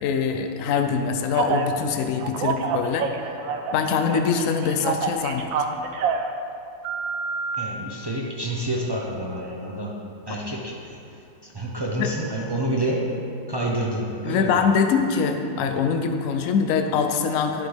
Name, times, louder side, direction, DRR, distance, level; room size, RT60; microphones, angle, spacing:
voice 1, 0.0-3.4 3.7-5.5 12.0-12.1 14.2-17.7, left 6 dB, 75° left, 5 dB, 0.7 m, -23 dB
Telephone, 1.3-1.7 2.2-3.8 4.1-6.3 6.8-7.5, right 6 dB, 85° right, 1.4 m, -27 dB
voice 2, 7.6-9.9 10.3-10.9 11.4-13.1 13.5-14.6, right 1 dB, 35° right, -3 dB, 0.4 m, -28 dB
11.0 x 7.9 x 3.5 m, 2.6 s
omnidirectional pair, 2.0 m